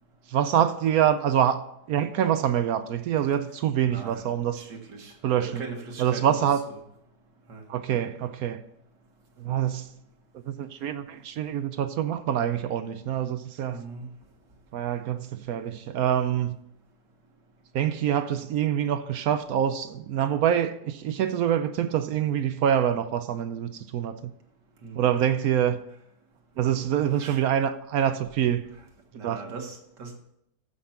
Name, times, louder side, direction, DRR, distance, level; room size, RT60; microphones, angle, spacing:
voice 1, 0.3-1.6 1.9-4.6 5.2-5.6 6.0-6.6 7.7-8.6 9.4-9.9 10.4-13.8 14.7-16.6 17.7-24.3 25.0-25.8 26.6-28.7 29.2-29.4, right 9 dB, 70° right, 1.0 m, -25 dB
voice 2, 3.8-5.1 5.4-6.8 7.5-7.6 13.7-14.1 24.8-25.1 27.2-27.4 29.1-30.2, right 4 dB, 85° right, 2.2 m, -40 dB
14.5 x 5.5 x 5.8 m
omnidirectional pair, 1.8 m